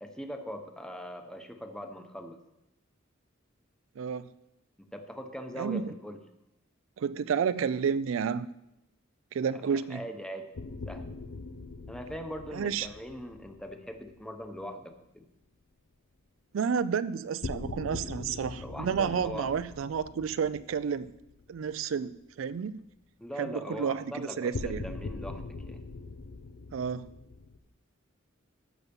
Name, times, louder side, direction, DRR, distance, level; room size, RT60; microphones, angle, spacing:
voice 1, 0.0-2.4 4.9-6.2 9.6-10.5 10.9-11.1 11.9-15.2 18.6-19.6 23.2-25.8, equal, 5° left, 6 dB, 0.9 m, -41 dB
voice 2, 4.0-4.3 5.6-5.9 7.0-8.5 9.3-10.0 12.5-12.9 16.5-21.1 21.5-22.8 23.4-24.9 26.7-27.1, right 6 dB, 75° right, 15 dB, 0.4 m, -31 dB
sound 1, 10.5-14.7 17.4-21.8 22.1-22.2 24.5-27.6, left 3 dB, 80° left, 0.6 m, -42 dB
14.0 x 5.7 x 5.3 m, 0.88 s
head